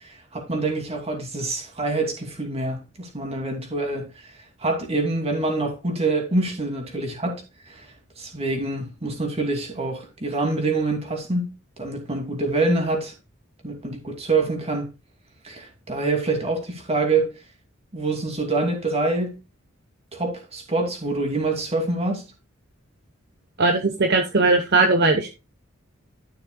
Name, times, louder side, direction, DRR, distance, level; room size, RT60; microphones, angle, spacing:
voice 1, 0.3-4.1 4.6-7.4 7.7-7.8 8.2-11.5 11.8-13.1 13.6-14.9 15.4-17.3 17.9-19.3 20.1-22.2, right 2 dB, 30° right, 2.5 m, -25 dB
voice 2, 23.6-25.3, right 3 dB, 50° right, 1.1 m, -19 dB
12.5 x 6.5 x 2.3 m
head